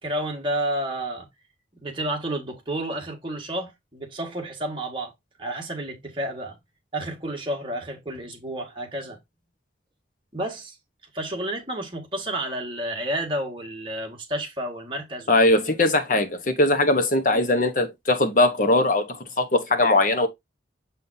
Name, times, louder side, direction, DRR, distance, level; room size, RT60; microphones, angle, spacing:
voice 1, 0.0-1.3 1.8-5.1 5.4-6.6 6.9-9.2 10.3-10.8 11.1-15.3, right 1 dB, 25° right, 1.8 m, -30 dB
voice 2, 15.3-20.3, left 2 dB, 45° left, 1.0 m, -20 dB
7.4 x 5.5 x 2.7 m
head